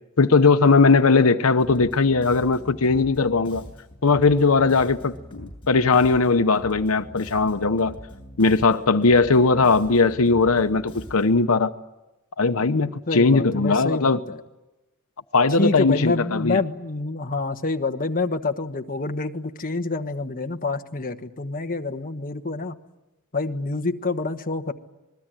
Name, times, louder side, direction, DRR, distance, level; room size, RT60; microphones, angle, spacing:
voice 1, 0.2-3.6 4.0-7.9 8.4-11.7 12.4-14.2 15.3-16.6, left 4 dB, 80° left, 9 dB, 0.9 m, -19 dB
Bass guitar, 1.6-11.5, equal, 25° left, 7.6 m, -42 dB
voice 2, 13.1-14.4 15.6-22.7 23.3-24.7, left 3 dB, 40° left, 5 dB, 1.3 m, -27 dB
27.5 x 21.0 x 9.1 m, 1.0 s
head